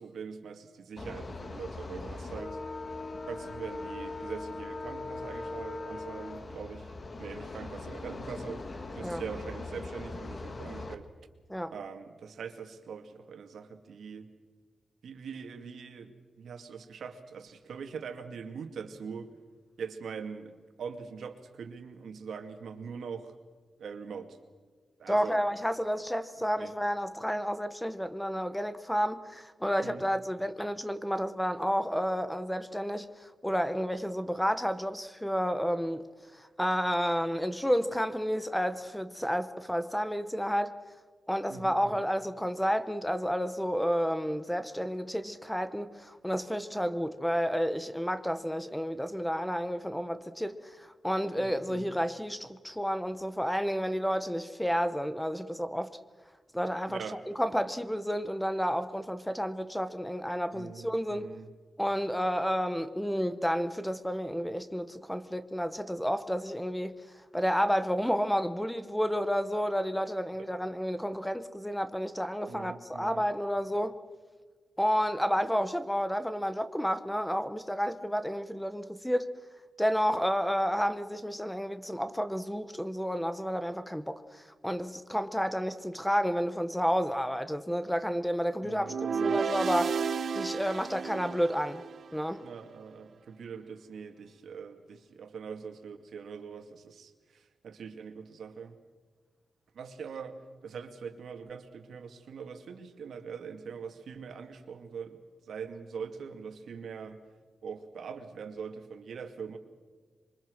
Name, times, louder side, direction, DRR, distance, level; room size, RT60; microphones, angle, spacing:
voice 1, 0.0-2.6 3.3-6.9 7.2-8.6 8.9-11.1 11.7-14.3 15.0-16.1 16.4-19.3 19.8-23.3 23.8-24.4 25.0-25.4 26.6-26.7 29.8-30.1 41.5-42.0 51.4-51.9 56.9-57.2 60.5-61.5 72.5-73.2 88.6-89.4 92.4-98.7 99.7-105.2 105.5-107.2 107.6-109.6, right 6 dB, 80° right, 2.2 m, -42 dB
sound 1, 1.0-10.9, left 3 dB, 30° left, 1.6 m, -40 dB
voice 2, 25.1-36.0 36.3-40.7 41.3-55.9 56.5-57.0 57.4-61.3 61.8-66.9 67.3-74.0 74.8-79.3 79.8-88.9 89.2-90.0 90.3-91.8 92.1-92.4, equal, 5° left, 0.9 m, -31 dB
sound 2, 88.8-92.1, right 6 dB, 55° right, 0.8 m, -32 dB
26.0 x 24.0 x 6.5 m
wide cardioid pair, 155°, 0 cm